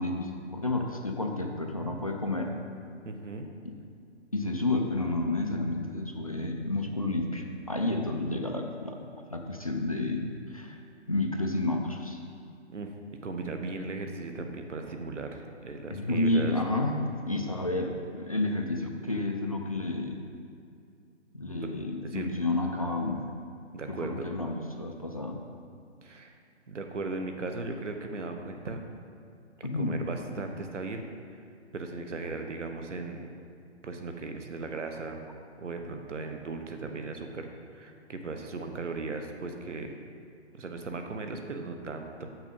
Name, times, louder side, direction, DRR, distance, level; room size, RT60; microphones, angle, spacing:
voice 1, 0.0-2.5 3.6-3.7 4.3-9.0 9.3-10.8 11.1-12.2 15.9-20.2 21.3-23.3 23.9-25.4 29.6-30.1, left 2 dB, 30° left, 2 dB, 0.4 m, -30 dB
voice 2, 3.0-3.5 12.7-12.9 13.2-16.5 21.6-21.7 22.1-22.3 23.7-24.3 26.0-26.3 26.7-28.8 29.6-31.0 31.7-33.3 33.8-35.2 35.6-40.0 40.5-42.3, right 3 dB, 90° right, 5 dB, 1.1 m, -37 dB
7.4 x 6.0 x 5.3 m, 2.4 s
hypercardioid pair, 165°, 35 cm